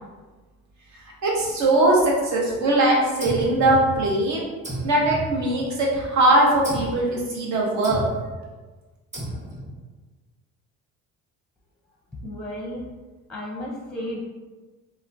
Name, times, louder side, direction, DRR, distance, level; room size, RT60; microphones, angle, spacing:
voice 1, 0.9-4.4 4.8-8.0, right 1 dB, 60° right, -3 dB, 0.9 m, -21 dB
sound 1, 3.2-4.2 4.6-5.9 6.6-7.1 7.8-8.4 9.1-9.8, equal, 20° right, 1.0 m, -33 dB
voice 2, 12.2-12.8 13.3-14.2, left 1 dB, 5° left, -2 dB, 0.6 m, -33 dB
2.9 x 2.1 x 2.5 m, 1.3 s
supercardioid pair, 70°, 32 cm